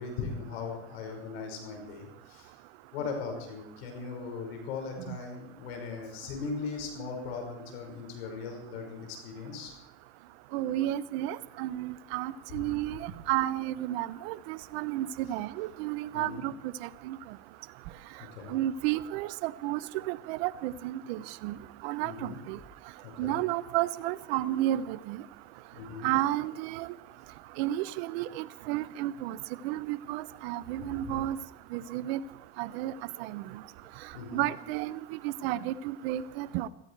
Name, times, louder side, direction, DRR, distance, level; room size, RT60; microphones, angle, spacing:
voice 1, 0.0-2.5 2.9-9.7 12.5-12.7 16.1-16.5 18.4-18.6 22.0-22.4 23.0-23.4 25.7-26.1 30.8-31.2 34.1-34.5, left 4 dB, 85° left, 3 dB, 5.3 m, -39 dB
voice 2, 10.5-16.5 16.8-17.2 18.5-19.8 20.1-21.6 21.8-22.6 23.2-25.2 26.0-26.9 27.6-29.4 29.6-31.4 31.7-32.2 32.6-32.9 33.2-33.4 34.3-36.7, right 14 dB, 75° right, 17 dB, 0.8 m, -32 dB
17.0 x 14.0 x 4.7 m, 0.82 s
supercardioid pair, 95°, 31 cm